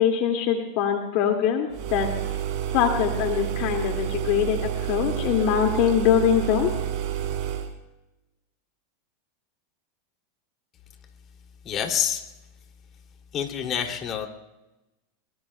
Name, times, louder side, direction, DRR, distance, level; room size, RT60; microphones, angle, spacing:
voice 1, 0.0-2.1 2.7-6.7, left 9 dB, 55° left, 3 dB, 2.1 m, -23 dB
sound 1, 1.7-7.7, right 11 dB, 55° right, 3.9 m, -29 dB
voice 2, 11.6-12.2 13.3-14.3, left 8 dB, 40° left, 3 dB, 2.6 m, -27 dB
25.0 x 24.0 x 2.2 m, 1.0 s
hypercardioid pair, 105°, 0 cm